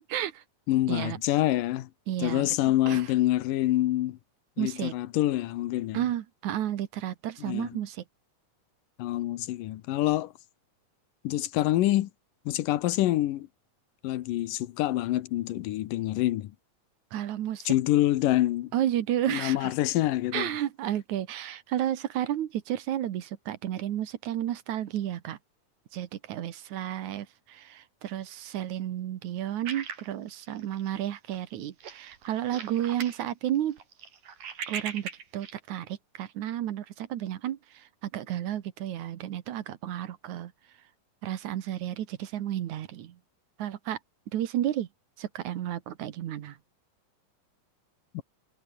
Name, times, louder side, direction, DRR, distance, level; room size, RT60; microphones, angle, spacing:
voice 1, 0.1-0.4 0.9-1.2 2.1-2.5 2.9-3.1 4.6-4.9 5.9-8.0 17.1-17.7 18.7-19.7 20.3-25.4 25.9-33.8 34.7-40.5 41.2-43.2 43.6-44.0 44.3-44.9 45.2-46.6, right 11 dB, 70° right, 2.6 m, -32 dB
voice 2, 0.7-1.9 2.2-4.2 4.6-6.0 7.4-7.8 9.0-10.3 11.2-12.1 12.5-13.5 14.0-16.5 17.7-18.7 19.3-20.5 48.1-48.2, left 15 dB, 85° left, 2.7 m, -26 dB
sound 1, 29.7-31.0 31.3-31.5 31.8-33.2 33.6-35.6, right 7 dB, 85° right, 4.9 m, -39 dB
omnidirectional pair, 3.7 m